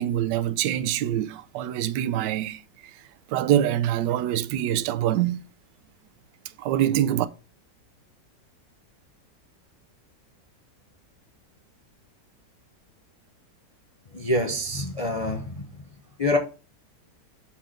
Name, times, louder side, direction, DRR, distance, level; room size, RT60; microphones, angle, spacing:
voice 1, 0.0-2.6 3.3-5.4 6.6-7.3, right 11 dB, 80° right, 1.2 m, -24 dB
voice 2, 14.1-15.7 16.2-16.4, left 1 dB, 70° left, 0.3 m, -26 dB
6.0 x 4.5 x 5.0 m
omnidirectional pair, 1.9 m